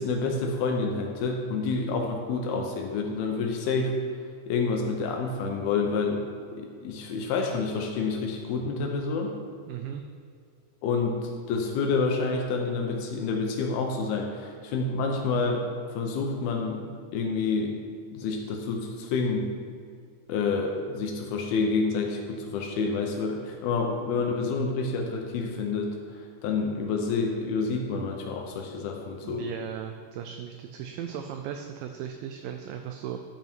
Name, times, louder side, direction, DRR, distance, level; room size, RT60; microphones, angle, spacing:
voice 1, 0.0-3.9 4.5-6.2 6.5-9.3 10.8-16.8 17.1-17.8 18.1-19.5 20.3-29.5, left 4 dB, 85° left, 1 dB, 2.7 m, -28 dB
voice 2, 9.7-10.0 29.2-33.2, right 9 dB, 85° right, 5 dB, 2.0 m, -37 dB
12.0 x 5.5 x 4.5 m, 2.2 s
omnidirectional pair, 4.4 m